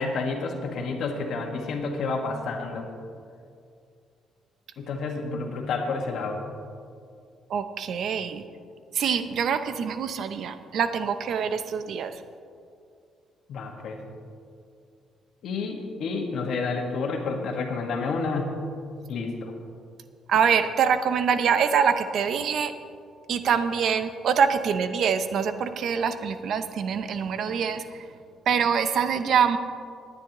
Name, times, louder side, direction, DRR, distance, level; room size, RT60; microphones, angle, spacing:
voice 1, 0.0-2.9 4.8-6.4 13.5-14.0 15.4-18.5 19.1-19.5, left 4 dB, 65° left, 2 dB, 1.6 m, -30 dB
voice 2, 7.5-8.4 9.0-12.1 20.3-22.7 23.3-27.8 28.5-29.6, right 7 dB, 55° right, 10 dB, 0.6 m, -24 dB
18.5 x 9.8 x 3.0 m, 2.3 s
cardioid pair, 140°, 0 cm